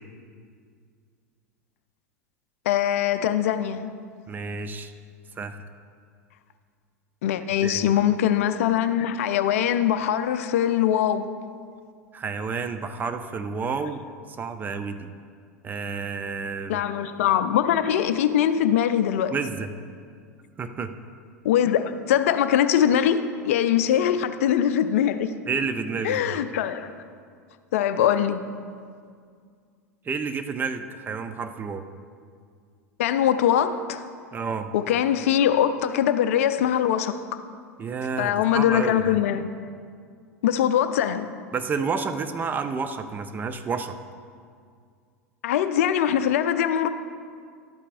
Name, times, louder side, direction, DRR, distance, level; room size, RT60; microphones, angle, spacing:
voice 1, 2.7-3.9 7.2-11.3 16.7-19.3 21.4-25.3 26.0-26.9 27.7-28.4 33.0-34.0 34.7-37.2 38.2-39.5 40.4-41.3 45.4-46.9, left 10 dB, 60° left, 11 dB, 0.4 m, -22 dB
voice 2, 4.3-4.9 5.4-5.6 7.6-7.9 12.1-14.0 14.4-15.1 15.6-16.8 19.3-19.7 20.6-20.9 25.5-26.4 30.0-31.9 34.3-34.7 37.8-39.2 41.5-44.0, right 5 dB, 20° right, 9 dB, 0.5 m, -30 dB
12.0 x 8.3 x 2.5 m, 2.2 s
figure-of-eight pair, 85°, 8 cm